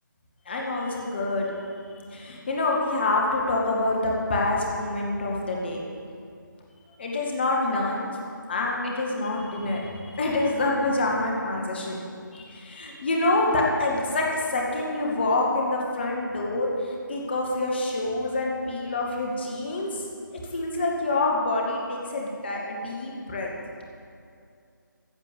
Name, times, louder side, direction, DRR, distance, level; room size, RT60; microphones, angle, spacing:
voice 1, 0.5-1.5 2.0-5.8 7.0-8.1 8.5-12.1 12.3-20.1 20.5-23.5, left 2 dB, 30° left, -2 dB, 2.0 m, -26 dB
15.0 x 7.4 x 7.1 m, 2.4 s
figure-of-eight pair, 160°, 11 cm